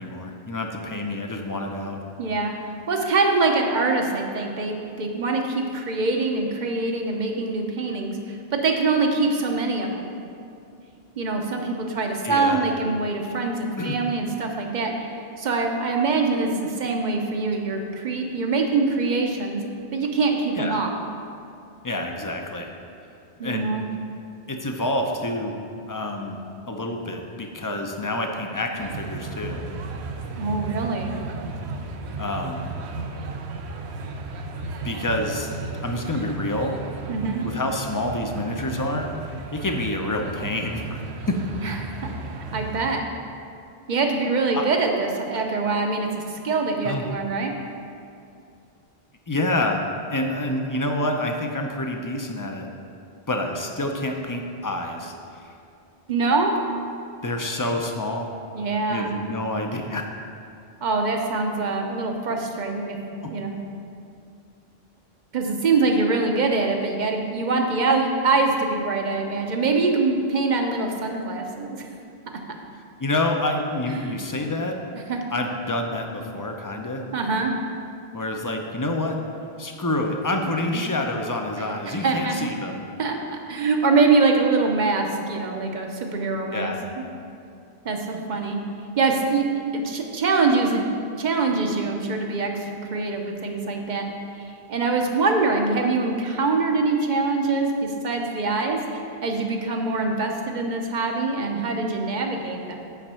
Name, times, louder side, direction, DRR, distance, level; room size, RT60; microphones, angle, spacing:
voice 1, 0.0-2.0 12.2-12.7 13.8-14.0 20.5-20.8 21.8-22.7 23.4-23.8 24.5-25.6 25.9-26.4 26.7-29.6 32.2-32.7 34.8-35.5 35.8-36.8 37.4-39.1 39.5-41.0 41.3-41.4 44.5-44.7 46.8-47.1 49.3-49.8 50.1-52.7 53.3-55.5 57.2-58.3 58.9-60.1 63.2-63.3 73.0-74.8 75.3-77.1 78.1-79.2 79.6-82.9 86.5-86.8, left 1 dB, 25° left, 3 dB, 0.5 m, -27 dB
voice 2, 2.2-2.5 2.9-10.1 11.2-19.6 19.9-20.9 23.4-23.9 30.4-31.2 37.1-37.4 41.6-41.7 42.5-43.0 43.9-47.5 56.1-56.5 58.5-59.2 60.8-63.0 63.3-63.6 65.3-71.8 73.9-74.1 75.1-75.2 77.1-77.5 80.4-80.5 81.6-82.5 83.0-87.0 87.8-88.6 89.0-89.5 89.7-90.9 91.2-94.1 94.7-102.7, right 3 dB, 50° right, 3 dB, 0.8 m, -24 dB
sound 1, 28.8-43.0, right 3 dB, 85° right, 0.9 m, -34 dB
5.9 x 5.3 x 6.8 m, 2.5 s
omnidirectional pair, 1.1 m